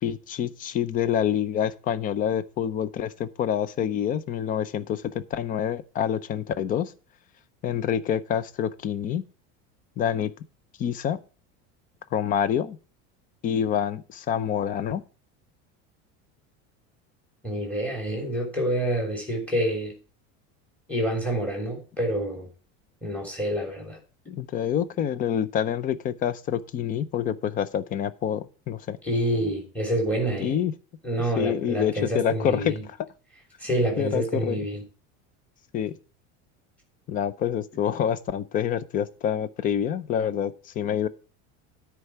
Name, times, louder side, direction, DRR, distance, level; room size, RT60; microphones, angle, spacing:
voice 1, 0.0-6.9 7.6-9.3 10.0-10.3 10.8-11.2 12.1-12.8 13.4-15.0 24.3-29.0 30.4-30.7 31.2-32.7 34.0-34.7 35.7-36.0 37.1-41.1, left 9 dB, 25° left, 0.5 m, -27 dB
voice 2, 17.4-19.9 20.9-22.5 23.0-24.0 29.0-30.6 31.0-32.8 33.6-34.8, right 1 dB, 5° left, 3.3 m, -27 dB
9.8 x 4.6 x 7.0 m
cardioid pair, 170°, 34 cm